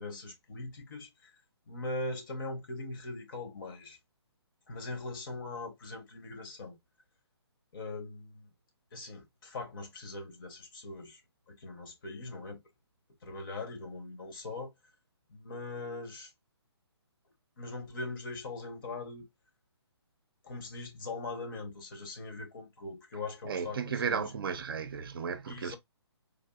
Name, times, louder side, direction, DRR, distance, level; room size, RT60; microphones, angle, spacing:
voice 1, 0.0-4.0 4.7-6.8 7.7-8.5 8.9-12.6 13.2-14.7 15.3-16.3 17.6-19.3 20.4-23.8 24.1-24.3 25.5-25.8, left 3 dB, 50° left, 1.0 m, -41 dB
voice 2, 23.5-25.8, right 6 dB, 55° right, 0.5 m, -34 dB
3.5 x 2.6 x 2.3 m
figure-of-eight pair, 145°, 14 cm